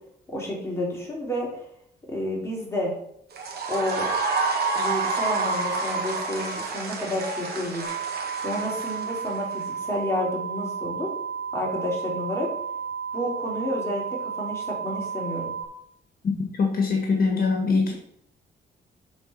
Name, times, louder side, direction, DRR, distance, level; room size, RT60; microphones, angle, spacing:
voice 1, 0.3-1.5 2.1-2.9 3.7-4.1 4.7-8.1 8.4-11.1 11.5-12.5 13.1-15.5, left 1 dB, 15° left, -4 dB, 3.2 m, -30 dB
sound 1, 3.3-9.6, right 3 dB, 60° right, 1.7 m, -28 dB
sound 2, 7.8-15.6, right 6 dB, 75° left, 1.1 m, -33 dB
voice 2, 16.5-17.9, left 4 dB, 50° left, 1 dB, 1.5 m, -22 dB
7.9 x 4.1 x 5.8 m, 0.71 s
cardioid pair, 110°, 19 cm